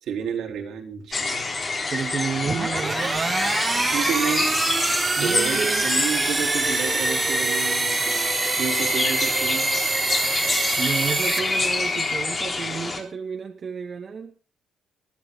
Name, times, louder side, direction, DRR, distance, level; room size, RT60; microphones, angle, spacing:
voice 1, 0.0-1.5 3.9-4.5 5.2-9.8, right 7 dB, 75° right, 3 dB, 3.5 m, -30 dB
sound 1, 1.1-13.0, left 3 dB, 35° left, 3.8 m, -27 dB
voice 2, 1.9-3.3 5.2-5.8 10.8-14.3, right 6 dB, 45° right, 2 dB, 1.9 m, -31 dB
sound 2, 2.4-12.2, right 4 dB, 30° right, 1.1 m, -25 dB
20.5 x 13.0 x 3.8 m, 0.34 s
cardioid pair, 90°, 0 cm